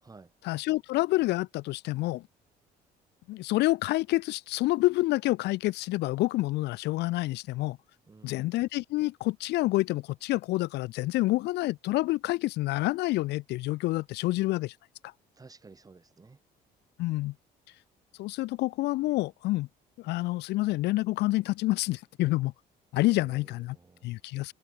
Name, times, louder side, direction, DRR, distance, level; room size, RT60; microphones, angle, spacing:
voice 1, 0.4-2.2 3.3-7.8 8.2-14.7 15.0-15.1 17.0-17.3 18.2-19.7 20.0-22.5 22.9-23.8 24.0-24.5, left 18 dB, 85° left, 2.1 m, -28 dB
voice 2, 8.1-8.5 15.4-16.4 23.1-24.1, right 4 dB, 20° right, 4.6 m, -53 dB
cardioid pair, 110°, 17 cm